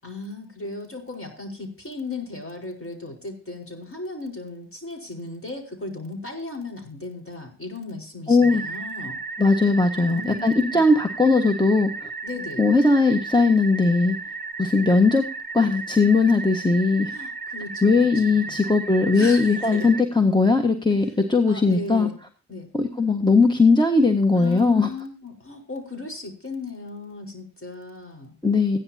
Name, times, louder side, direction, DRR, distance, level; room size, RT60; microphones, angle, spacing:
voice 1, 0.0-9.2 10.0-10.8 12.2-12.6 17.1-18.7 19.1-19.9 21.5-22.2 22.5-22.7 24.3-28.3, left 3 dB, 35° left, 1 dB, 4.9 m, -36 dB
voice 2, 8.3-8.6 9.4-12.1 12.6-14.2 14.6-15.2 15.5-17.1 17.8-22.1 22.7-24.9 28.4-28.8, left 3 dB, 10° left, 4 dB, 1.5 m, -19 dB
sound 1, 8.4-20.0, right 4 dB, 30° right, 1.5 m, -34 dB
16.0 x 10.5 x 2.8 m, 0.38 s
cardioid pair, 40°, 36 cm